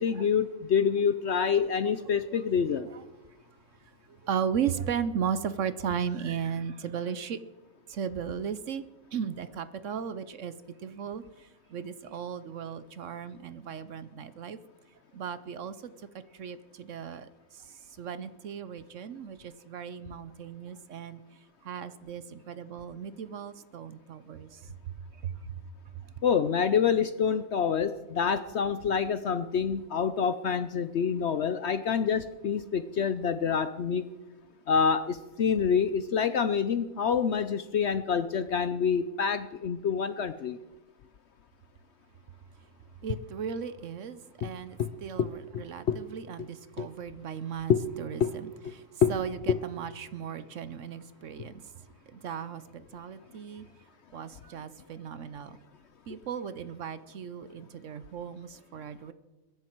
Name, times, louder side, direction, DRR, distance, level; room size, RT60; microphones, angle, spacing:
voice 1, 0.0-2.9 26.2-34.1 34.7-40.6 44.4-44.5 44.8-44.9 45.2-45.3 45.5-46.0 46.4-46.5 46.8-46.9 47.7-47.8 48.2-48.3 48.6-48.7 49.0-49.1 49.5-49.6, left 7 dB, 60° left, 12 dB, 0.7 m, -27 dB
voice 2, 4.1-7.4 7.9-8.8 9.1-10.5 10.8-14.6 15.1-16.1 16.3-21.2 21.6-24.7 25.2-25.6 26.0-26.1 43.0-51.7 52.1-53.7 54.1-55.6 56.1-59.1, right 7 dB, 60° right, 14 dB, 1.0 m, -36 dB
22.5 x 10.5 x 4.5 m, 1.2 s
omnidirectional pair, 1.6 m